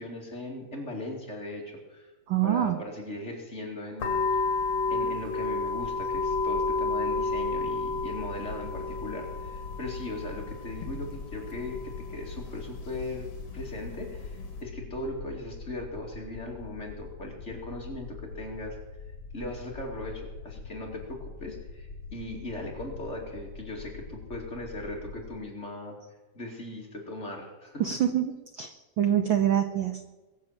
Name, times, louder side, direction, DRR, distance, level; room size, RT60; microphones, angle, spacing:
voice 1, 0.0-2.1 2.4-4.6 4.9-13.3 13.5-18.8 19.3-26.0 26.3-27.8, left 1 dB, 25° left, -1 dB, 2.6 m, -38 dB
voice 2, 2.3-2.8 27.8-30.0, right 10 dB, 80° right, 8 dB, 1.0 m, -26 dB
sound 1, 4.0-14.6, left 3 dB, 60° left, 3.3 m, -32 dB
sound 2, 5.8-25.4, left 4 dB, 45° left, 3.0 m, -44 dB
22.0 x 7.6 x 7.4 m, 1.2 s
omnidirectional pair, 3.3 m